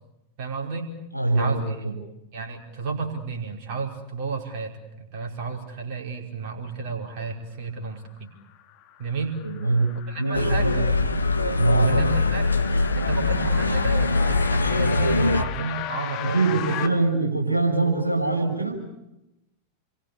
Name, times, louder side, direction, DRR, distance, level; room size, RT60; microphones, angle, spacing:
voice 1, 0.4-0.9 1.3-1.8 2.3-4.7 5.0-8.3 9.0-9.3 10.1-10.7 11.8-12.6 12.9-16.9, right 4 dB, 45° right, 2 dB, 5.0 m, -32 dB
voice 2, 1.1-1.9 9.4-10.8 11.6-11.9 16.2-18.8, right 3 dB, 90° right, 5 dB, 3.6 m, -23 dB
sound 1, 8.5-16.9, left 12 dB, 40° left, 2.1 m, -37 dB
sound 2, 10.3-15.4, left 3 dB, 80° left, 1.3 m, -22 dB
28.0 x 23.0 x 6.8 m, 0.90 s
figure-of-eight pair, 90°, 0 cm